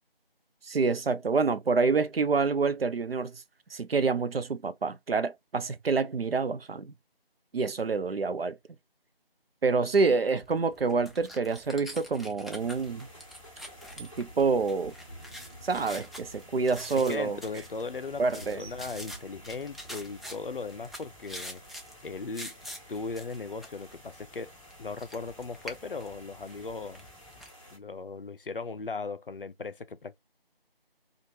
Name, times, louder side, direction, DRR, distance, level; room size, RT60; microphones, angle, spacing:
voice 1, 0.7-3.4 3.7-6.9 7.5-8.6 9.6-13.1 14.0-14.9 15.6-17.4 18.2-18.6, right 4 dB, 70° right, 0.5 m, -27 dB
sound 1, 10.4-27.5, equal, ahead, 0.3 m, -47 dB
sound 2, 12.6-27.8, equal, 35° left, 0.9 m, -51 dB
voice 2, 17.1-21.6 22.0-22.5 22.9-24.5 24.8-27.1 27.7-30.2, left 4 dB, 60° left, 0.5 m, -38 dB
3.1 x 2.3 x 2.7 m
figure-of-eight pair, 175°, 30 cm